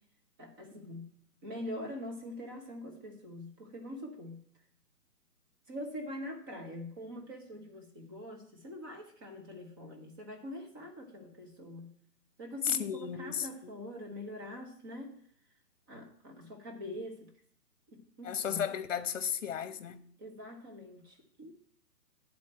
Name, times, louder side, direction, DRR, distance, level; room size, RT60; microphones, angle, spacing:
voice 1, 0.4-1.1 1.4-4.4 5.7-11.9 12.4-15.2 15.9-17.3 17.9-18.6 20.2-21.7, left 1 dB, 15° right, 0.8 m, -44 dB
voice 2, 12.6-13.5 18.2-20.0, left 8 dB, 55° left, 0.9 m, -34 dB
9.2 x 4.3 x 7.5 m
hypercardioid pair, 150°, 47 cm